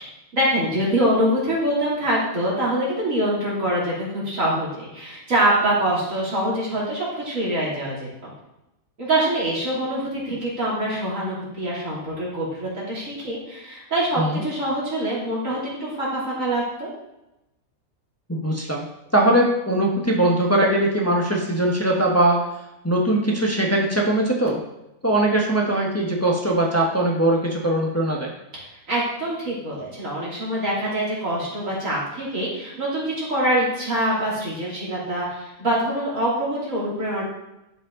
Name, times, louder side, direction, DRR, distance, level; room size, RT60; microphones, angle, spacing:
voice 1, 0.3-8.3 9.0-16.9 28.9-37.3, right 1 dB, 65° right, -7 dB, 3.4 m, -24 dB
voice 2, 18.3-18.8 19.1-22.4 22.8-24.6 25.0-28.3, right 1 dB, 10° left, -1 dB, 1.1 m, -21 dB
11.5 x 5.4 x 3.7 m, 0.92 s
omnidirectional pair, 1.5 m